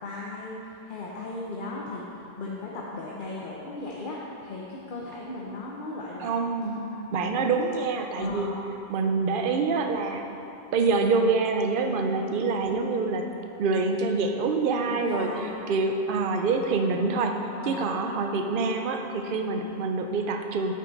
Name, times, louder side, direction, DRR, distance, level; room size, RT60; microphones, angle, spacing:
voice 1, 0.0-0.6 0.9-2.1 2.4-6.4 7.0-7.3 8.1-8.5 12.5-12.8 14.9-15.6 17.6-17.8, left 2 dB, 55° left, -4 dB, 0.9 m, -36 dB
voice 2, 6.2-8.5 8.9-10.2 10.7-13.3 13.6-15.3 15.7-20.7, right 4 dB, 60° right, 4 dB, 0.7 m, -26 dB
8.4 x 5.6 x 3.9 m, 2.9 s
omnidirectional pair, 1.1 m